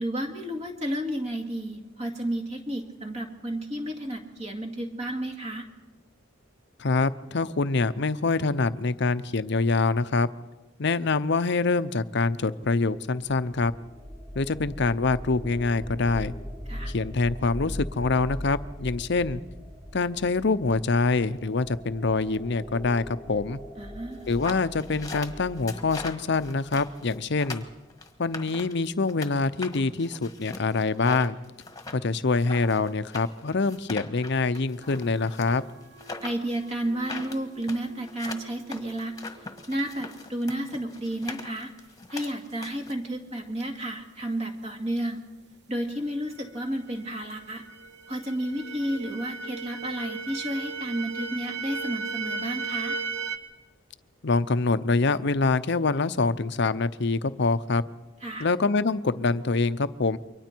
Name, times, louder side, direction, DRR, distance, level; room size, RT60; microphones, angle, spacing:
voice 1, 0.0-5.7 16.7-16.9 23.8-24.3 36.2-39.1 39.7-41.7 42.1-45.2 45.7-47.6 48.1-53.0 58.2-58.5, right 1 dB, 35° right, 3 dB, 2.2 m, -32 dB
voice 2, 6.8-10.3 10.8-13.7 14.3-16.3 16.9-19.4 19.9-23.6 24.3-27.6 28.2-31.4 31.9-35.6 54.2-57.8 58.4-60.2, left 3 dB, 60° left, 13 dB, 0.7 m, -25 dB
sound 1, 13.2-27.8, equal, 5° right, 1.6 m, -41 dB
sound 2, 24.3-29.3 29.6-42.9, left 3 dB, 20° left, 1.5 m, -41 dB
sound 3, 34.8-40.2 46.4-46.5 46.9-53.4, right 4 dB, 55° right, 1.3 m, -37 dB
29.0 x 23.5 x 4.6 m, 1.1 s
head